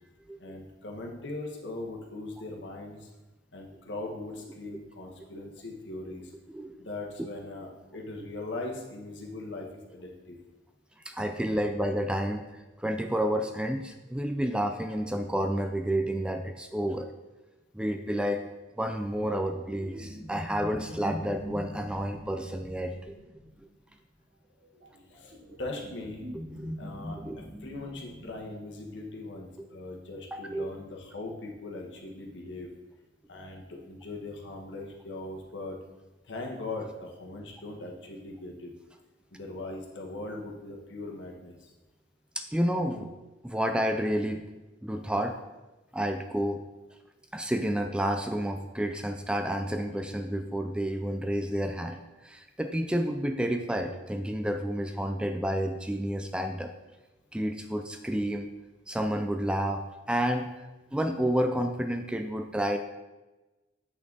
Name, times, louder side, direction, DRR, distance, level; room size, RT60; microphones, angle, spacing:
voice 1, 0.4-3.1 3.5-6.3 6.8-10.4 25.1-25.3 25.6-26.2 26.8-27.2 27.6-32.7 33.3-35.8 36.2-38.7 39.3-41.6, left 2 dB, 70° left, 0 dB, 1.4 m, -40 dB
voice 2, 6.5-6.8 11.1-12.5 12.8-17.1 17.7-18.4 18.8-23.1 25.5-25.6 26.6-26.8 27.3-27.4 30.3-30.7 42.4-43.1 43.4-44.4 44.8-45.4 45.9-46.6 47.3-56.7 57.3-58.5 58.9-60.5 60.9-62.8, equal, 5° right, 6 dB, 0.4 m, -30 dB
sound 1, 18.6-23.7 24.6-28.4, equal, 65° right, 2.4 m, -43 dB
8.3 x 6.0 x 4.0 m, 1.1 s
head